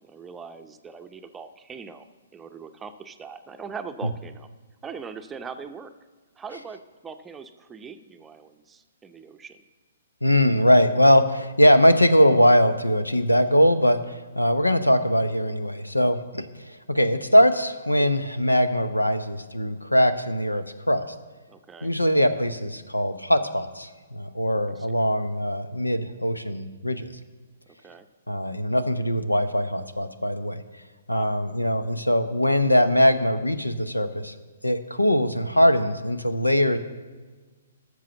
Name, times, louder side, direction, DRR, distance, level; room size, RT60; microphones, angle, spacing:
voice 1, 0.0-2.1 2.3-4.5 4.8-5.9 6.4-9.6 21.5-21.9 24.8-24.9 27.8-28.1 31.1-31.2, right 5 dB, 10° right, 7 dB, 0.6 m, -41 dB
voice 2, 10.2-16.5 16.9-21.0 21.8-27.1 28.3-30.6 31.1-34.3 34.6-36.8, equal, 90° left, 12 dB, 0.8 m, -21 dB
13.5 x 6.3 x 7.1 m, 1.4 s
figure-of-eight pair, 125°, 0 cm